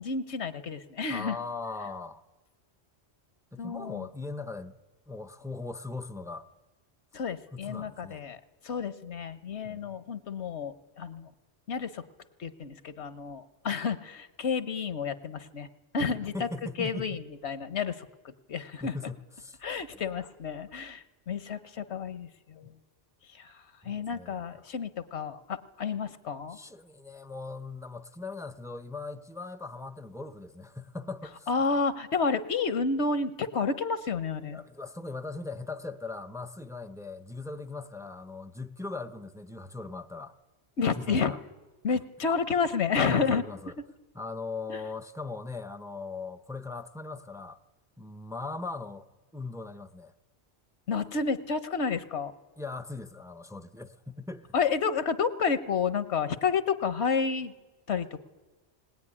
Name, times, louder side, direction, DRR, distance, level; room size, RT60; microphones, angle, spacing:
voice 1, 0.0-1.4 3.6-4.1 7.1-11.3 11.7-12.0 12.4-15.7 15.9-16.5 16.8-19.0 19.6-22.7 23.3-26.6 31.5-34.6 40.8-41.3 41.8-43.4 44.7-44.8 50.9-52.3 54.5-57.5 57.9-58.2, left 5 dB, 75° left, 1.3 m, -30 dB
voice 2, 1.1-2.2 3.5-4.8 5.1-6.5 7.5-8.2 9.6-10.0 13.6-13.7 16.3-17.1 18.8-19.6 19.9-20.1 20.7-20.8 23.8-24.4 26.5-31.5 34.5-40.3 41.0-41.4 43.0-43.7 44.1-47.6 48.0-49.1 49.3-50.1 52.6-54.5, left 3 dB, 5° right, 0.5 m, -39 dB
20.0 x 19.0 x 9.8 m
omnidirectional pair, 1.1 m